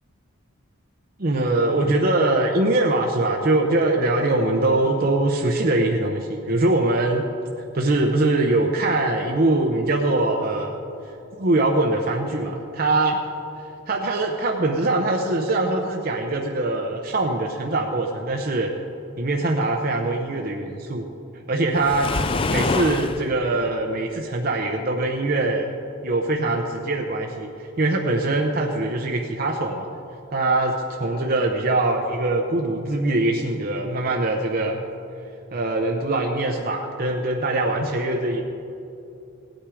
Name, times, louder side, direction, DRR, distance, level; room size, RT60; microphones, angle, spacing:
voice 1, 1.2-7.2 7.7-10.8 11.4-13.2 13.9-18.7 19.2-21.1 21.5-22.1 22.5-25.7 26.0-29.9 30.3-34.8 35.5-38.4, right 2 dB, 40° right, 1 dB, 0.7 m, -22 dB
Waves surf, 21.8-23.3, left 4 dB, 25° left, 0.3 m, -25 dB
17.0 x 8.9 x 4.9 m, 2.8 s
head